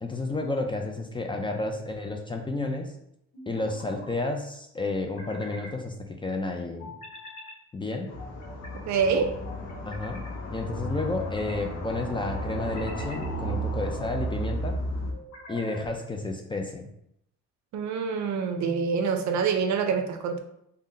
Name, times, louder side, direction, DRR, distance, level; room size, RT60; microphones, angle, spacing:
voice 1, 0.0-2.9 3.5-6.9 7.7-8.1 9.8-10.2 10.5-14.7 15.5-16.9, left 2 dB, 15° left, 3 dB, 0.3 m, -31 dB
sound 1, 1.3-2.0 3.3-4.1 4.9-5.8 6.8-7.6 8.2-8.8 9.5-10.3 11.0-11.6 12.3-13.3 13.8-14.3 15.1-15.9, left 1 dB, 80° left, 0.9 m, -45 dB
sound 2, 8.1-15.1, right 1 dB, 60° left, 0.6 m, -33 dB
voice 2, 8.9-9.3 17.7-20.4, right 5 dB, 65° right, 5 dB, 0.5 m, -26 dB
2.6 x 2.1 x 3.7 m, 0.76 s
cardioid pair, 90°, 30 cm